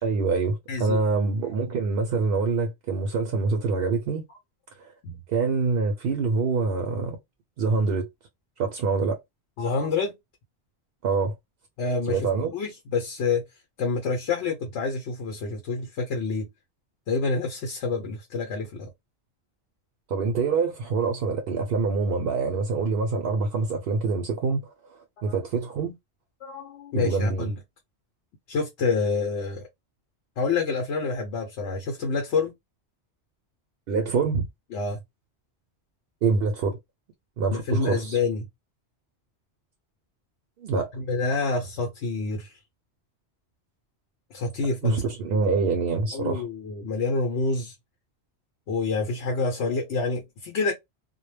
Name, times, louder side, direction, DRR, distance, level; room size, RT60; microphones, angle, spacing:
voice 1, 0.0-4.2 4.8-4.9 5.3-7.2 7.6-8.1 8.6-9.2 11.0-11.4 12.1-12.5 20.1-26.0 26.9-27.5 33.9-34.4 36.2-36.8 37.4-38.2 40.6-40.9 44.8-46.5, right 4 dB, 65° right, 0.7 m, -25 dB
voice 2, 0.7-1.0 5.0-5.2 9.6-10.2 11.8-13.4 13.8-16.5 17.1-18.9 25.2-25.4 26.4-27.6 28.5-29.7 30.4-32.5 34.7-35.0 37.5-38.5 40.9-42.6 44.3-45.0 45.3-45.4 46.1-47.7 48.7-50.7, left 4 dB, 85° left, 0.9 m, -27 dB
2.2 x 2.1 x 3.1 m
omnidirectional pair, 1.1 m